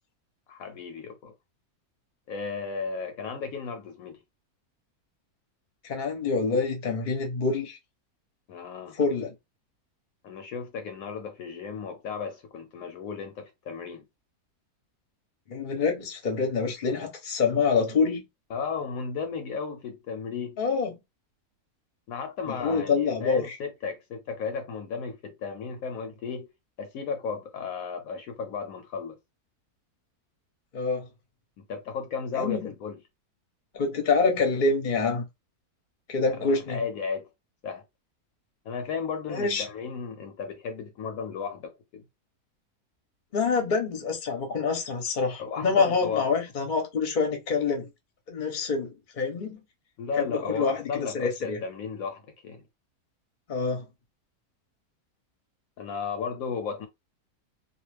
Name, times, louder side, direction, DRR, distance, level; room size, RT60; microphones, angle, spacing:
voice 1, 0.5-1.3 2.3-4.2 8.5-9.0 10.2-14.0 18.5-20.6 22.1-26.5 26.8-29.2 31.7-33.0 36.4-37.3 37.6-37.8 38.6-42.0 45.4-46.4 50.0-52.6 55.8-56.9, left 5 dB, 70° left, 1.0 m, -34 dB
voice 2, 5.8-7.8 8.9-9.3 15.5-18.2 20.6-21.0 22.5-23.5 30.7-31.1 32.3-32.7 33.7-35.2 36.1-36.8 39.3-39.6 43.3-47.9 48.3-49.6 50.2-51.6 53.5-53.9, left 4 dB, 40° left, 0.8 m, -26 dB
2.4 x 2.4 x 3.2 m
omnidirectional pair, 1.6 m